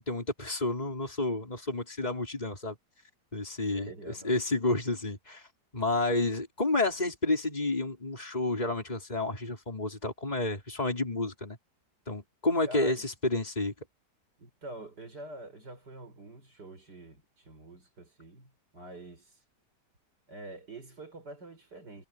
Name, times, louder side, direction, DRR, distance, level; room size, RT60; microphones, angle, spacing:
voice 1, 0.0-2.8 3.3-5.5 5.7-11.6 12.1-13.7, left 2 dB, 25° left, 5.0 m, -30 dB
voice 2, 3.7-4.4 12.6-13.0 14.4-19.3 20.3-22.1, right 1 dB, 75° right, 6.8 m, -46 dB
omnidirectional pair, 1.8 m